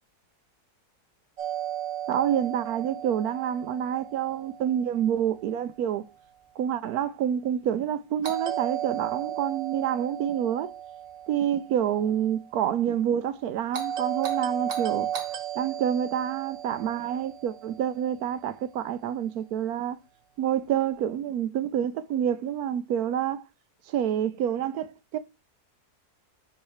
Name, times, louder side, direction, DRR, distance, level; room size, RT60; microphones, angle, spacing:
Doorbell, 1.4-5.4 8.2-12.5 13.7-18.1, right 10 dB, 60° right, 1.5 m, -35 dB
voice 1, 2.1-6.0 6.6-10.7 11.3-15.1 15.6-20.0 20.4-23.4 23.9-25.2, right 9 dB, 75° right, 1.0 m, -28 dB
5.6 x 4.0 x 4.7 m
omnidirectional pair, 1.7 m